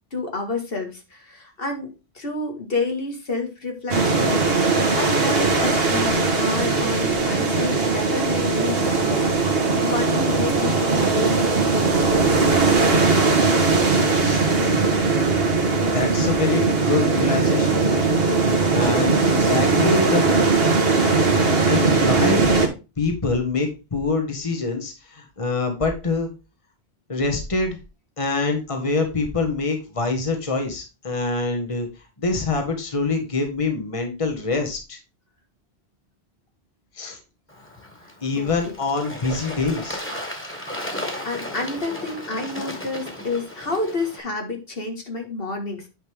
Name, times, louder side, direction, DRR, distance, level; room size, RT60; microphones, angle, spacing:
voice 1, 0.1-11.4 38.4-38.5 41.2-45.9, left 3 dB, 60° left, 3 dB, 1.9 m, -29 dB
sound 1, 3.9-22.7, right 3 dB, 65° right, 1.7 m, -19 dB
voice 2, 15.9-17.8 18.1-18.2 18.7-20.2 21.6-22.5 23.0-26.3 27.1-27.8 28.2-31.9 32.2-35.0 36.9-37.2 38.2-40.0, left 3 dB, 30° left, 4 dB, 1.6 m, -25 dB
Bird / Water, 37.5-44.2, left 1 dB, 10° left, 2.0 m, -35 dB
9.5 x 5.3 x 3.6 m, 0.28 s
omnidirectional pair, 1.1 m